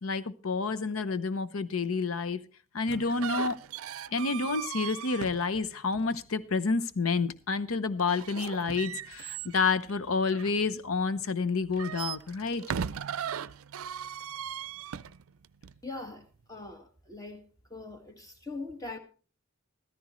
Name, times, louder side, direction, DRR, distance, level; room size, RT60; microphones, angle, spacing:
voice 1, 0.0-2.4 2.7-3.6 4.1-12.6, left 4 dB, 90° left, 0.8 m, -29 dB
sound 1, 2.9-6.2 8.0-11.1 11.6-15.8, right 8 dB, 90° right, 0.5 m, -38 dB
voice 2, 15.8-17.4 17.7-19.0, left 3 dB, 15° left, 1.8 m, -41 dB
14.5 x 13.5 x 3.1 m
head